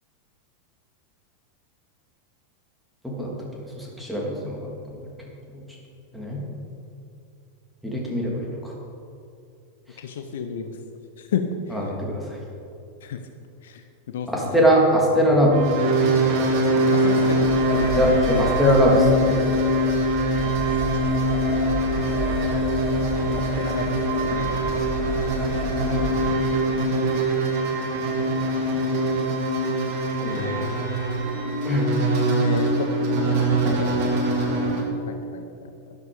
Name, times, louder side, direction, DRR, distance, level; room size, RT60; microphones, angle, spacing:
voice 1, 3.0-4.6 5.5-5.6 6.1-6.4 7.8-8.6 11.7-12.2 14.3-15.6 17.9-19.4 30.2-30.8 31.6-31.8, equal, ahead, -3 dB, 3.1 m, -21 dB
voice 2, 10.0-10.7 11.2-11.4 13.0-13.2 13.6-13.8 14.1-14.7 16.7-17.9 20.3-21.0 22.1-22.3 23.3-24.6 30.4-30.6 32.4-34.1 34.4-35.7, left 7 dB, 60° left, 7 dB, 0.8 m, -33 dB
sound 1, 15.5-34.8, right 1 dB, 45° right, 2.2 m, -23 dB
sound 2, 17.1-26.3, equal, 25° left, 3.0 m, -31 dB
12.0 x 12.0 x 5.3 m, 2.6 s
figure-of-eight pair, 90°, 0 cm